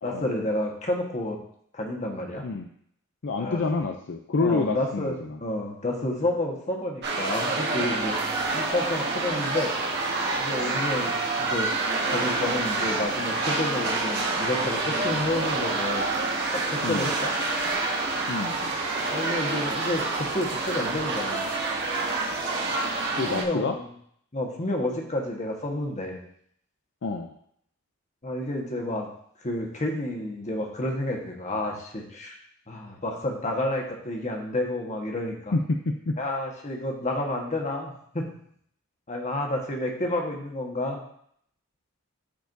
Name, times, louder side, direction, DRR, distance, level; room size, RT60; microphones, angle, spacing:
voice 1, 0.0-1.4 1.7-2.4 3.4-3.6 4.4-8.2 8.5-9.7 10.4-11.7 12.1-16.1 16.5-17.3 19.1-21.4 23.3-23.9 24.3-26.2 28.2-29.1 29.4-32.4 32.7-35.5 36.2-38.3 39.1-41.0, left 1 dB, 35° left, 1 dB, 1.4 m, -30 dB
voice 2, 3.2-5.4 16.8-17.1 18.3-18.6 23.2-23.8 27.0-27.3 35.5-36.2, left 3 dB, 60° left, 4 dB, 0.5 m, -28 dB
sound 1, 7.0-23.4, right 3 dB, 55° right, 1.6 m, -27 dB
13.5 x 4.7 x 2.7 m, 0.67 s
head